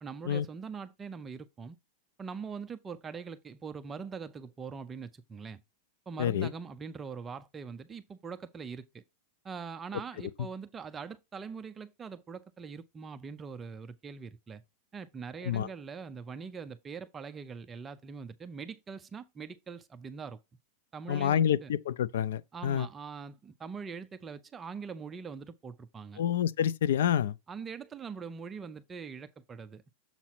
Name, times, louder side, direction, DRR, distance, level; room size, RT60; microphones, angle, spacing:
voice 1, 0.0-1.8 2.2-5.6 6.1-9.0 9.4-14.6 14.9-20.4 20.9-21.7 22.5-26.2 27.5-29.9, right 5 dB, 15° right, 0.4 m, -42 dB
voice 2, 6.2-6.5 15.4-15.7 21.1-22.9 26.2-27.3, left 9 dB, 80° left, 0.4 m, -28 dB
7.2 x 2.8 x 5.9 m
supercardioid pair, 170°, 0 cm